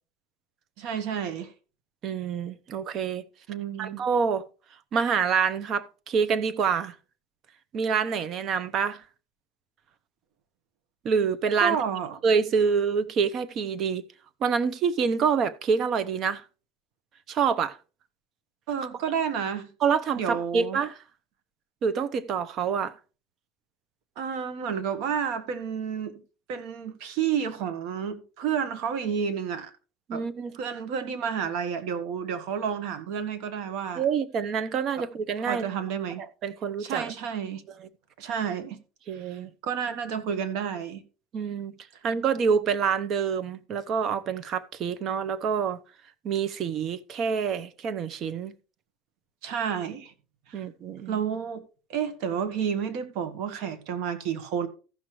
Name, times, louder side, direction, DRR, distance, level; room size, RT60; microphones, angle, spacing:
voice 1, 0.8-1.5 3.5-4.0 11.6-12.2 18.7-19.7 20.1-20.8 24.2-26.2 26.5-29.7 30.1-30.3 30.5-34.1 35.0-35.1 35.4-36.2 36.8-37.6 38.2-38.8 39.1-41.0 49.4-50.1 50.5-50.6 51.1-51.6 51.9-54.7, right 7 dB, 65° right, 1.5 m, -30 dB
voice 2, 2.0-3.2 3.8-4.5 4.9-6.9 7.7-9.0 11.0-11.8 12.2-14.0 14.4-16.4 17.3-17.8 19.8-21.0 21.8-22.9 30.1-30.5 34.0-35.7 36.4-37.1 39.1-39.5 41.3-41.7 42.0-45.8 46.2-48.5 50.5-51.2, right 6 dB, 45° right, 0.8 m, -26 dB
14.5 x 6.1 x 3.2 m
supercardioid pair, 120°, 0 cm